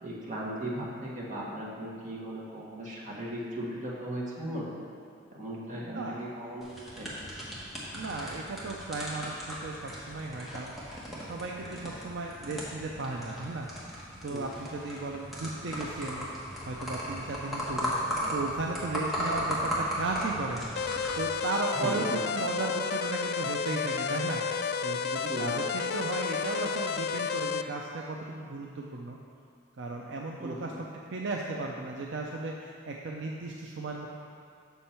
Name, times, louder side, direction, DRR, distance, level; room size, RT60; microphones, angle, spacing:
voice 1, 0.0-4.7 5.3-7.1 14.3-14.4 21.7-22.2 25.3-25.4 30.4-30.8, right 1 dB, 40° right, -5 dB, 1.4 m, -37 dB
voice 2, 5.9-6.5 7.9-10.7 11.2-13.7 14.2-16.3 16.7-17.9 18.3-20.7 21.2-24.4 24.8-29.2 29.8-34.1, right 3 dB, 65° right, -1 dB, 0.5 m, -35 dB
sound 1, 6.6-21.2, equal, ahead, 1.3 m, -36 dB
sound 2, 20.8-27.6, left 6 dB, 55° left, 0.3 m, -31 dB
6.9 x 6.4 x 4.4 m, 2.3 s
head